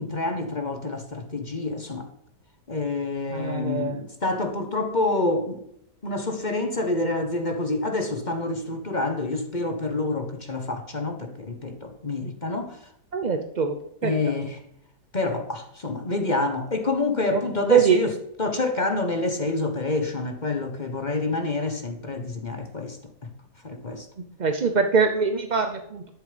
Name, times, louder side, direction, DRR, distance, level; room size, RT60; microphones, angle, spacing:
voice 1, 0.0-2.1 2.7-5.6 6.0-12.8 14.0-14.6 15.1-18.1 18.4-23.3 23.6-24.1, left 2 dB, 30° left, 1.2 m, -27 dB
voice 2, 3.3-4.0 13.1-13.8 14.0-14.2 17.3-18.0 24.4-26.1, right 6 dB, 40° right, 0.6 m, -23 dB
12.5 x 7.2 x 5.2 m
omnidirectional pair, 1.8 m